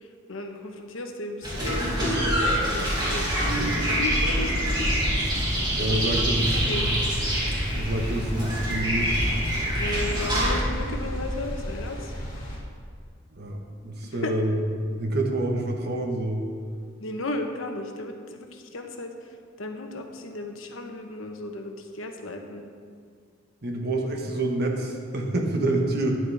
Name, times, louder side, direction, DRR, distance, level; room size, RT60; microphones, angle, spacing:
voice 1, 0.0-4.8 5.9-6.2 6.5-6.9 9.8-12.1 14.2-14.3 17.0-22.6, left 2 dB, 80° left, 4 dB, 1.1 m, -35 dB
sound 1, 1.4-10.6, equal, 25° right, 2.6 m, -25 dB
sound 2, 4.8-12.6, equal, 40° left, 2.9 m, -35 dB
voice 2, 5.8-6.9 7.7-9.2 13.3-16.4 23.6-26.2, right 1 dB, 55° right, 1 dB, 1.4 m, -27 dB
12.5 x 10.0 x 3.5 m, 2.1 s
head